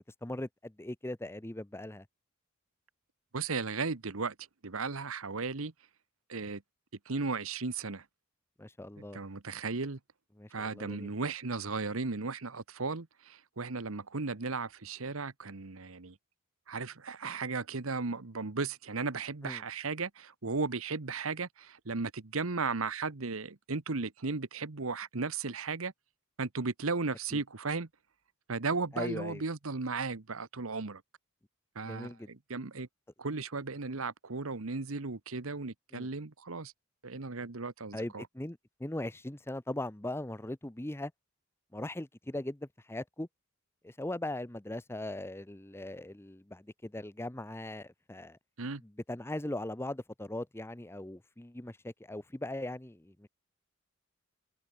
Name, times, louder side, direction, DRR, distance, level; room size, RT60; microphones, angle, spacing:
voice 1, 0.0-2.0 8.6-9.2 10.4-11.1 19.4-19.6 27.3-27.4 28.9-29.4 31.9-32.3 35.9-36.1 37.9-41.1 41.7-43.3 43.8-48.4 48.8-53.3, left 1 dB, 10° left, 0.8 m, -39 dB
voice 2, 3.3-4.3 4.6-5.7 6.3-6.6 7.1-8.0 9.0-10.0 10.5-16.1 16.7-25.9 26.4-27.9 28.5-31.0 31.7-32.9 33.2-36.7 37.0-38.2 48.6-48.8, right 4 dB, 75° right, 1.2 m, -35 dB
head